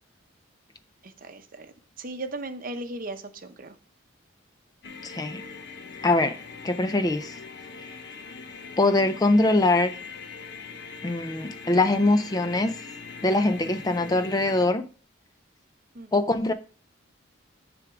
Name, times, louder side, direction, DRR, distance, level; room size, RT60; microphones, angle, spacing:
voice 1, 1.0-3.8 15.9-16.3, right 2 dB, 45° right, 8 dB, 0.8 m, -37 dB
sound 1, 4.8-14.7, left 5 dB, 55° left, 0.7 m, -42 dB
voice 2, 5.0-5.4 6.0-6.4 6.6-7.4 7.8-7.9 8.8-10.0 11.0-12.7 13.2-14.8 16.1-16.5, left 2 dB, 20° left, 10 dB, 0.4 m, -23 dB
9.9 x 3.5 x 4.8 m, 0.39 s
head